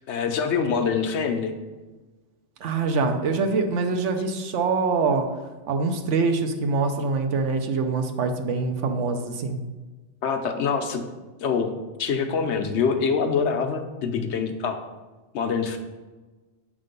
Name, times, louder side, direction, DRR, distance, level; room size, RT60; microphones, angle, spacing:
voice 1, 0.0-1.5 10.2-11.1 11.4-14.9 15.3-15.8, left 6 dB, 75° left, 6 dB, 1.0 m, -25 dB
voice 2, 2.6-5.3 5.7-9.6, right 4 dB, 90° right, 6 dB, 1.0 m, -24 dB
7.6 x 3.7 x 5.2 m, 1.2 s
omnidirectional pair, 1.2 m